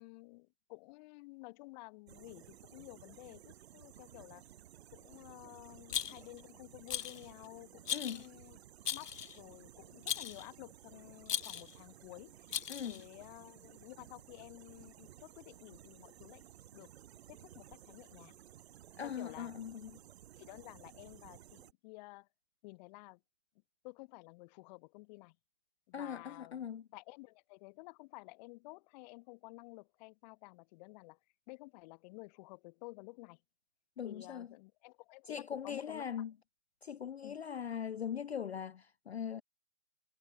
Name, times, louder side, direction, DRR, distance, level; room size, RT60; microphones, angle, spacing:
voice 1, 0.0-4.5 4.9-8.6 8.9-16.4 16.7-16.9 17.3-18.4 19.0-19.5 20.4-22.3 22.6-23.2 23.8-25.4 25.9-31.2 31.5-33.4 34.0-36.2 37.2-37.4, left 25 dB, 25° left, 2.3 m, -52 dB
sound 1, 2.1-21.7, right 12 dB, 40° right, 2.3 m, -57 dB
Rattle, 5.9-6.4 6.9-7.3 7.9-8.3 8.9-9.4 10.1-10.5 11.3-11.7 12.5-13.0, left 9 dB, 85° left, 0.7 m, -38 dB
voice 2, 7.9-8.2 12.7-13.0 19.0-20.0 25.9-26.9 34.0-34.5 35.3-36.3 36.8-39.4, left 8 dB, 45° left, 0.4 m, -41 dB
sound 2, 9.4-19.1, left 2 dB, 5° left, 7.4 m, -81 dB
figure-of-eight pair, 135°, 46 cm